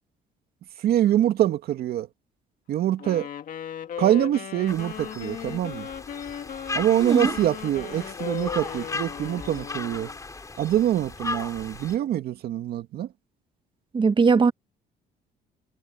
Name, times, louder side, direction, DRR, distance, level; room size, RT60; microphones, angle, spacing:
voice 1, 0.8-2.1 2.7-3.3 4.0-5.9 6.7-10.1 10.6-13.1, right 12 dB, 65° right, 2.4 m, -24 dB
Wind instrument woodwind instrument, 3.0-10.2, left 9 dB, 55° left, 2.1 m, -37 dB
sound 1, 4.7-12.0, left 3 dB, 20° left, 2.8 m, -36 dB
voice 2, 7.0-7.4 13.9-14.5, right 5 dB, 30° right, 1.4 m, -19 dB
cardioid pair, 110°, 17 cm